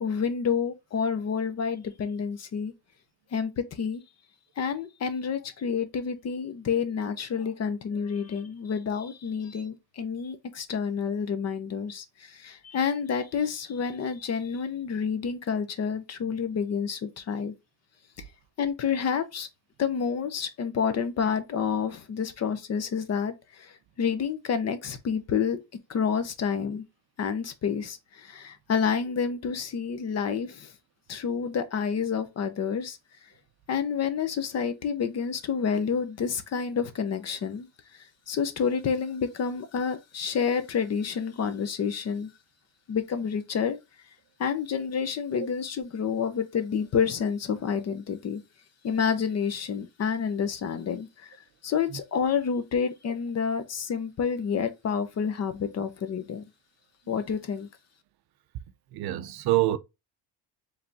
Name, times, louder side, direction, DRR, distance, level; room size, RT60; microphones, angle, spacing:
voice 1, 0.0-2.7 3.3-4.0 4.6-17.5 18.6-19.5 19.8-25.6 25.9-26.8 27.2-30.7 31.1-33.0 33.7-42.3 42.9-43.8 44.4-48.4 48.8-56.4 57.1-57.7, left 6 dB, 35° left, 0.6 m, -29 dB
voice 2, 58.9-59.8, right 16 dB, 60° right, 0.5 m, -25 dB
4.8 x 3.3 x 2.6 m
cardioid pair, 160°, 44 cm